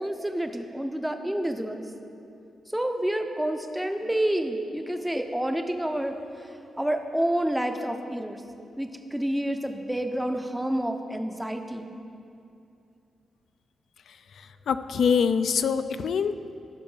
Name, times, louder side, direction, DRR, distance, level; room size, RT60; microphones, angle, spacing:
voice 1, 0.0-1.8 2.7-6.1 6.8-8.4 8.8-11.9, right 1 dB, 5° right, 6 dB, 0.5 m, -28 dB
voice 2, 14.4-16.5, left 6 dB, 65° left, 12 dB, 0.4 m, -25 dB
12.5 x 5.2 x 5.4 m, 2.6 s
wide cardioid pair, 155°, 0 cm